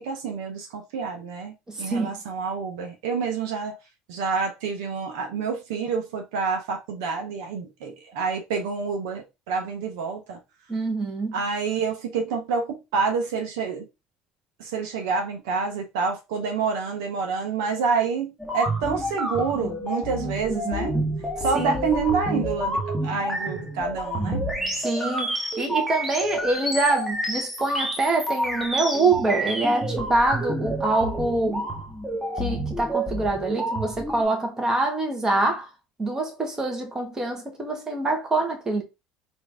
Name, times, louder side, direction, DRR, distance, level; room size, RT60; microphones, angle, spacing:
voice 1, 0.0-3.8 4.1-10.4 11.3-13.9 14.6-21.0 21.4-24.5, right 5 dB, 80° right, 0.8 m, -28 dB
voice 2, 1.7-2.1 10.7-11.4 20.2-21.0 21.5-22.0 24.7-31.7 32.3-35.7 36.0-38.8, right 2 dB, 25° right, 1.3 m, -25 dB
sound 1, 18.4-34.2, right 1 dB, 5° right, 1.2 m, -29 dB
3.1 x 2.7 x 3.4 m
supercardioid pair, 80°, 3 cm